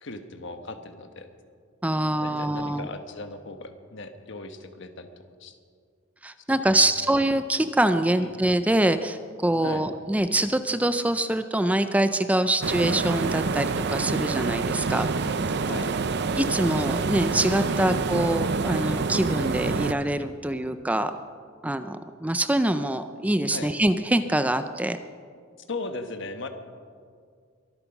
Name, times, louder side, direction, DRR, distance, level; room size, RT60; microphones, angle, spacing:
voice 1, 0.0-1.3 2.2-5.1 5.4-5.6 6.7-6.9 7.2-7.3 8.2-8.4 9.6-9.8 15.7-15.9 17.7-17.9 23.5-23.7 25.7-26.5, left 2 dB, 65° left, 7 dB, 1.2 m, -37 dB
voice 2, 1.8-2.9 6.2-15.1 16.4-21.2 21.6-25.0, right 1 dB, 5° right, 10 dB, 0.4 m, -24 dB
sound 1, 12.6-19.9, right 4 dB, 55° right, 0.6 m, -27 dB
23.5 x 9.2 x 6.0 m, 2.1 s
head